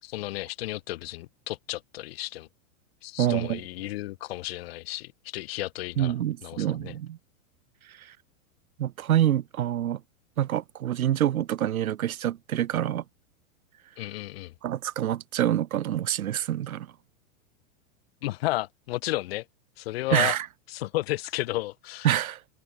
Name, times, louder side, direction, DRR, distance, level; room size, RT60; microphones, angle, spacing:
voice 1, 0.0-2.5 3.0-6.1 6.4-6.9 14.0-14.5 18.2-19.5 19.8-20.4 20.7-22.1, left 17 dB, 45° left, 5.3 m, -33 dB
voice 2, 3.2-3.6 6.0-7.2 7.9-8.1 8.8-10.0 10.4-13.0 14.6-16.9 20.1-20.5 22.0-22.4, right 11 dB, 85° right, 6.0 m, -26 dB
supercardioid pair, 180°, 41 cm